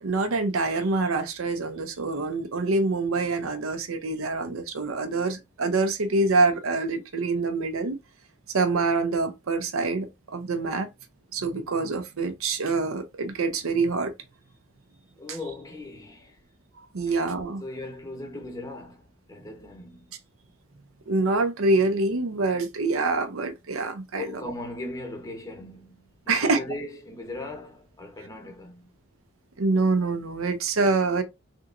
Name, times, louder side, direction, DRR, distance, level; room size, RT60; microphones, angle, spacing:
voice 1, 0.0-8.0 8.5-10.9 11.3-14.1 16.9-17.6 21.1-24.5 26.3-26.6 29.6-31.2, right 3 dB, 80° right, 0.6 m, -25 dB
voice 2, 15.2-16.4 17.1-17.2 17.6-20.1 24.1-28.9, left 2 dB, 15° left, 0.7 m, -38 dB
3.4 x 2.9 x 2.5 m
head